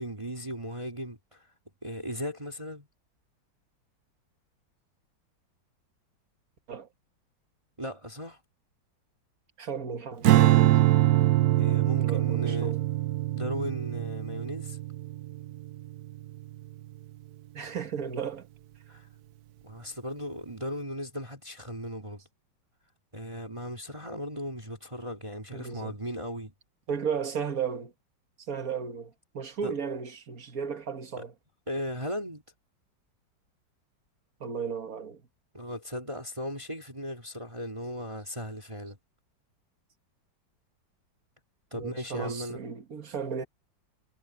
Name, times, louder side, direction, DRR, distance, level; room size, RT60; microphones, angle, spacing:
voice 1, 0.0-1.5 1.8-2.9 7.8-8.4 11.6-12.7 13.3-14.8 18.9-19.1 19.6-22.2 23.1-26.5 29.6-29.7 31.2-31.3 31.7-32.4 35.5-39.0 41.7-42.6, equal, 15° right, 2.3 m, -37 dB
voice 2, 9.6-10.7 12.0-12.8 17.5-18.5 25.5-25.9 26.9-27.9 28.5-31.3 34.4-35.2 41.7-43.4, right 6 dB, 50° right, 1.8 m, -34 dB
Strum, 10.2-16.6, right 15 dB, 65° right, 1.0 m, -24 dB
omnidirectional pair, 2.1 m